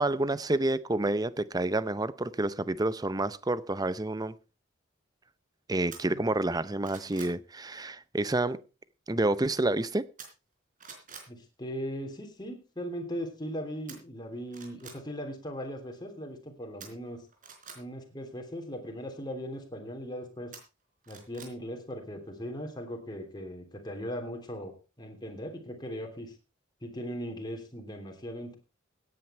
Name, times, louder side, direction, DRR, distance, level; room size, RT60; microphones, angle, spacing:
voice 1, 0.0-4.3 5.7-8.6 9.1-10.1, right 2 dB, 20° right, 0.7 m, -29 dB
sound 1, 5.9-6.0 6.5-7.4 10.2-10.5 10.8-11.3 13.9-14.0 14.5-15.0 16.8-17.8 20.5-21.5 21.9-22.0, right 6 dB, 40° right, 4.1 m, -47 dB
voice 2, 11.3-17.2 17.7-20.5 21.1-26.3 26.8-28.6, equal, 20° left, 3.2 m, -39 dB
17.0 x 9.5 x 4.4 m
head